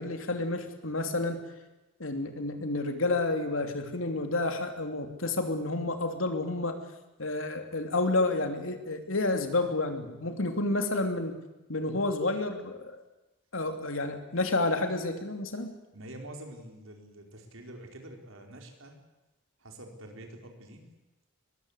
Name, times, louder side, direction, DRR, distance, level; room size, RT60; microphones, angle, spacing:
voice 1, 0.0-1.4 2.0-6.8 7.2-11.4 11.7-13.0 13.5-15.7, left 2 dB, 80° left, 6 dB, 3.1 m, -30 dB
voice 2, 15.9-19.0 19.6-20.9, right 1 dB, 90° right, 3 dB, 4.6 m, -46 dB
22.0 x 21.5 x 8.3 m, 1.0 s
head